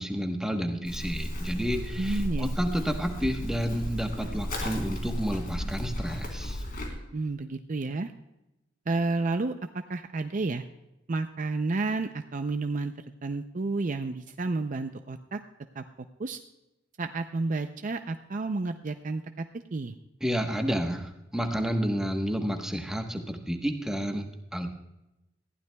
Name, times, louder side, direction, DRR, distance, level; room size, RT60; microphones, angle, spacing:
voice 1, 0.0-6.6 20.2-24.7, equal, 5° right, 3 dB, 1.1 m, -30 dB
Livestock farm animals working animals, 0.8-6.9, equal, 50° left, 3.6 m, -34 dB
voice 2, 2.0-2.5 7.1-8.1 8.9-10.6 11.1-12.9 13.2-15.4 15.8-15.9 16.2-16.4 17.0-20.0, right 3 dB, 45° right, 7 dB, 0.5 m, -31 dB
20.0 x 15.0 x 2.3 m, 0.93 s
head